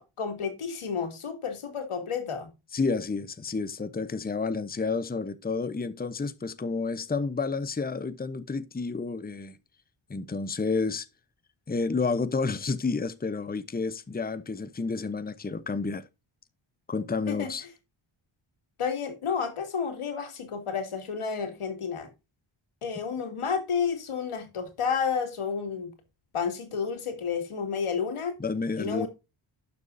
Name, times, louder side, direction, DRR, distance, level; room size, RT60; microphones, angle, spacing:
voice 1, 0.0-2.5 17.3-17.5 18.8-22.1 22.8-25.9 26.3-28.4 28.8-29.1, left 6 dB, 80° left, 2.7 m, -31 dB
voice 2, 2.7-9.6 10.1-11.1 11.7-16.0 16.9-17.6 28.4-29.1, left 4 dB, 20° left, 0.8 m, -30 dB
11.5 x 7.0 x 2.7 m
cardioid pair, 70°, 50 cm